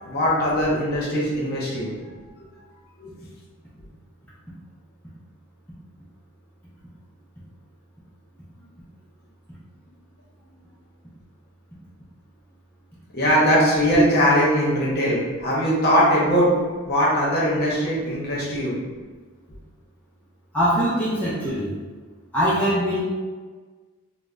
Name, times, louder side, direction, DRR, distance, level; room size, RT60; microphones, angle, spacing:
voice 1, 0.0-1.9 3.0-3.1 13.1-16.5 16.9-18.7, equal, 45° left, -6 dB, 0.7 m, -20 dB
voice 2, 20.5-21.7 22.3-23.0, equal, 5° left, -10 dB, 0.4 m, -22 dB
3.2 x 2.0 x 2.4 m, 1.4 s
head